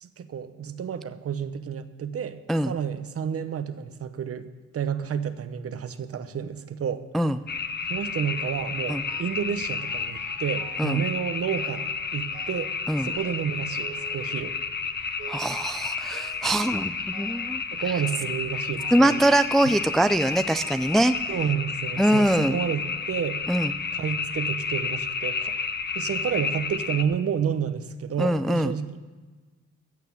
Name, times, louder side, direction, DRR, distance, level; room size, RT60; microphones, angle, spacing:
voice 1, 0.0-2.4 2.7-4.5 4.7-7.0 7.9-12.7 13.0-14.5 15.6-15.8 17.7-19.2 21.3-23.4 23.9-25.5 25.9-29.0, right 7 dB, 50° right, 11 dB, 0.9 m, -30 dB
sound 1, 7.5-27.0, left 5 dB, 35° left, 0.9 m, -31 dB
sound 2, 9.1-9.5 9.8-11.1 11.5-12.0 12.3-12.8 13.1-14.8 15.2-15.7 16.1-16.8 17.1-17.6 17.9-18.3 18.8-19.2 19.7-20.2 20.5-21.6 22.3-22.4 23.2-23.3 23.7-23.8, right 6 dB, 75° right, 2.0 m, -48 dB
voice 2, 15.3-17.6 18.9-21.1 22.0-22.6 23.5-23.7 28.2-28.8, right 1 dB, ahead, 11 dB, 0.4 m, -23 dB
15.5 x 6.7 x 7.2 m, 1.3 s
cardioid pair, 90°, 30 cm